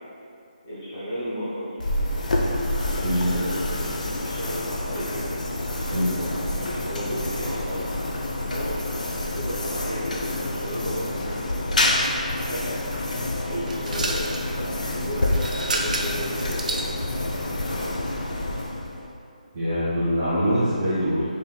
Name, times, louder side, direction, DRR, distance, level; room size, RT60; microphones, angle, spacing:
voice 1, 0.6-1.9 2.8-5.2 5.6-8.2 8.5-11.2 11.9-12.8 13.4-15.3 15.6-16.8 17.3-18.0, equal, 20° left, -11 dB, 0.9 m, -34 dB
sound 1, 1.8-19.2, left 1 dB, 60° left, 0.5 m, -28 dB
voice 2, 3.0-3.4 5.9-6.2 19.5-21.2, equal, 10° right, -14 dB, 0.8 m, -23 dB
sound 2, 13.7-14.5 15.2-16.9, right 2 dB, 65° right, 0.5 m, -30 dB
5.3 x 3.3 x 2.2 m, 2.5 s
hypercardioid pair, 175°, 4 cm